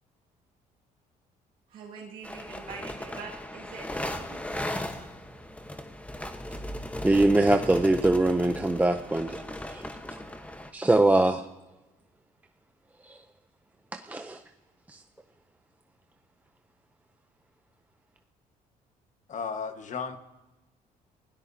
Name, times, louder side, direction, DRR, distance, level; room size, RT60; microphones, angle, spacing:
voice 1, 1.7-5.1, right 5 dB, 65° right, -3 dB, 2.2 m, -45 dB
sound 1, 2.2-10.7, left 1 dB, 10° left, 1.2 m, -37 dB
voice 2, 7.0-9.4 9.7-9.8 10.7-11.4 14.1-14.4, right 2 dB, 10° right, 6 dB, 0.7 m, -22 dB
voice 3, 19.3-20.2, left 6 dB, 50° left, 7 dB, 1.6 m, -34 dB
30.0 x 17.0 x 2.8 m, 1.1 s
cardioid pair, 90°, 16 cm